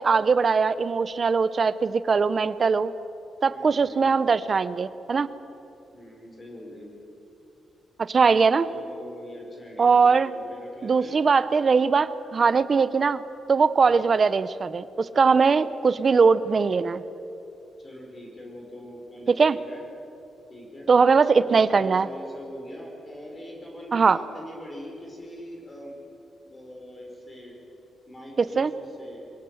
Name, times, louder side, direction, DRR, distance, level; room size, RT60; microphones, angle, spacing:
voice 1, 0.0-2.9 3.4-5.3 8.1-8.7 9.8-10.3 10.8-13.2 13.5-17.0 19.3-19.6 20.9-22.1 23.9-24.2 28.6-28.7, right 5 dB, 35° right, 15 dB, 0.7 m, -21 dB
voice 2, 3.5-4.2 5.9-6.9 8.6-11.2 13.8-14.1 17.8-19.9 20.5-20.9 21.4-25.9 26.4-27.6 28.1-29.2, left 1 dB, 20° left, 0 dB, 4.2 m, -42 dB
24.5 x 18.0 x 7.9 m, 2.9 s
wide cardioid pair, 165°, 0 cm